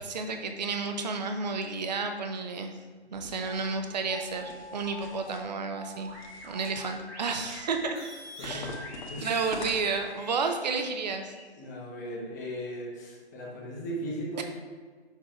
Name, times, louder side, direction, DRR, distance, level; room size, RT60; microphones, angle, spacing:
voice 1, 0.0-2.7 3.1-6.1 6.4-8.0 8.4-8.7 9.2-11.3, right 4 dB, 40° right, 5 dB, 0.6 m, -31 dB
sound 1, 3.0-11.5, equal, 5° right, 1.1 m, -46 dB
sound 2, 3.1-3.8 4.3-5.4 6.1-7.0 7.3-7.8 8.4-10.2, left 2 dB, 40° left, 1.3 m, -45 dB
voice 2, 8.4-8.7 9.1-9.6 11.6-14.4, equal, 15° left, -3 dB, 0.9 m, -37 dB
6.6 x 3.6 x 4.7 m, 1.6 s
figure-of-eight pair, 145°, 34 cm